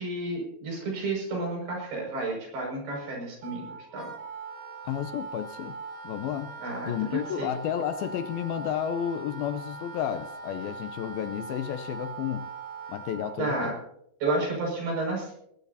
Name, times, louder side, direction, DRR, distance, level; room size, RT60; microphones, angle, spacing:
voice 1, 0.0-3.7 3.9-4.1 6.6-7.5 13.4-13.8 14.2-15.3, right 2 dB, 75° right, 0 dB, 8.2 m, -31 dB
Wind instrument woodwind instrument, 3.4-13.4, right 4 dB, 45° right, 1.9 m, -41 dB
voice 2, 4.9-5.8 6.0-6.5 6.8-12.5 12.9-13.8, left 10 dB, 80° left, 10 dB, 2.4 m, -32 dB
20.0 x 19.0 x 2.8 m, 0.76 s
omnidirectional pair, 4.7 m